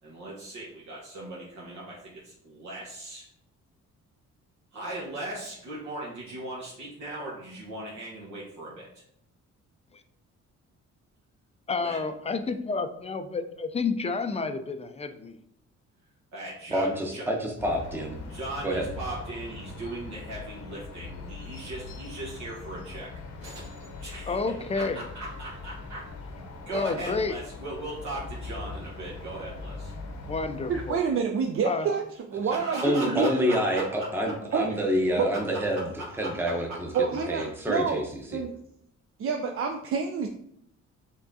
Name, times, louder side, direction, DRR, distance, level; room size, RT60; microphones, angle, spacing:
voice 1, 0.0-3.3 4.7-9.0 11.8-12.0 16.3-17.2 18.2-23.1 23.4-26.1 26.7-29.9 32.5-34.4 35.3-37.0, right 2 dB, 70° right, -5 dB, 1.2 m, -39 dB
voice 2, 11.7-15.4 24.3-25.0 26.7-27.3 30.3-31.0 31.6-31.9, left 4 dB, 20° left, 8 dB, 0.4 m, -30 dB
voice 3, 16.7-18.2 18.6-18.9 32.8-35.9 36.2-36.9 37.3-38.0 38.3-38.4, equal, 5° right, 1 dB, 0.8 m, -27 dB
sound 1, 17.6-30.9, left 3 dB, 60° left, 0.8 m, -41 dB
voice 4, 30.7-32.0 32.3-33.3 34.5-34.7 35.1-35.3 36.9-38.0 38.3-38.5 39.2-40.3, right 6 dB, 45° right, 4 dB, 0.5 m, -27 dB
5.5 x 3.5 x 2.7 m, 0.72 s
cardioid pair, 90°, 30 cm